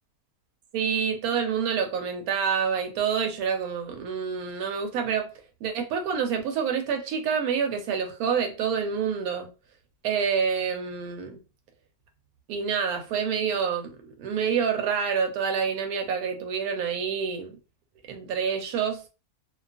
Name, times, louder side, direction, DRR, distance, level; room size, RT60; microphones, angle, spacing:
voice 1, 0.7-5.3 5.6-9.5 10.0-11.4 12.5-17.6 18.1-19.0, right 6 dB, 80° right, 1.1 m, -27 dB
2.7 x 2.3 x 2.3 m
omnidirectional pair, 1.6 m